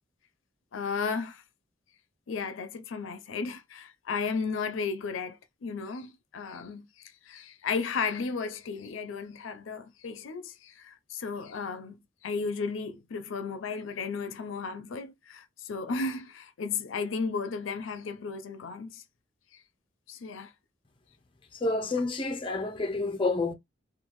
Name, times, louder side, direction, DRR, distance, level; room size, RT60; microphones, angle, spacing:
voice 1, 0.7-1.4 2.3-19.0 19.5-19.6 20.1-20.5, left 5 dB, 90° left, 0.5 m, -34 dB
voice 2, 21.6-23.5, left 3 dB, 25° left, 0.5 m, -29 dB
2.6 x 2.3 x 2.9 m
head